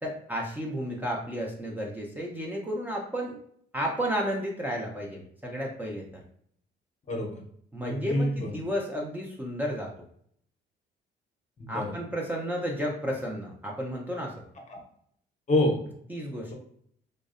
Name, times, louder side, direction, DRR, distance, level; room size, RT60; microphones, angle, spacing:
voice 1, 0.0-3.4 3.7-6.0 7.7-9.9 11.7-14.3 16.1-16.5, equal, 10° right, -3 dB, 0.4 m, -32 dB
voice 2, 7.1-7.4 7.8-8.6 11.6-11.9 14.7-14.8 15.5-15.8, left 1 dB, 35° left, 1 dB, 0.7 m, -27 dB
2.5 x 2.0 x 2.4 m, 0.66 s
cardioid pair, 90°, 20 cm